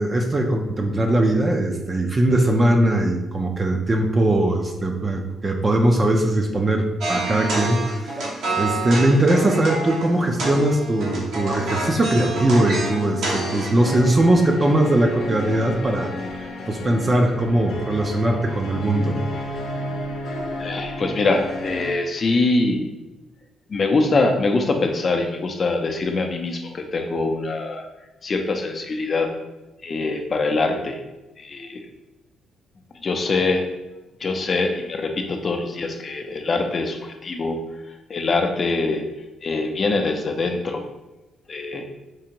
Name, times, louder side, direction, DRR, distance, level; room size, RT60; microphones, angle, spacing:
voice 1, 0.0-16.1 16.7-19.2, right 1 dB, 30° right, 2 dB, 0.5 m, -20 dB
sound 1, 7.0-13.8, right 2 dB, 75° right, 1.1 m, -28 dB
sound 2, 13.8-21.9, left 1 dB, 75° left, 0.7 m, -32 dB
voice 2, 20.6-22.9 23.7-27.9 28.2-29.3 29.8-31.0 31.4-31.9 33.0-33.7 34.2-37.7 38.1-39.0 39.4-40.8 41.5-41.8, left 3 dB, 40° left, 4 dB, 0.5 m, -23 dB
4.6 x 2.5 x 2.9 m, 1.0 s
cardioid pair, 90°, 0 cm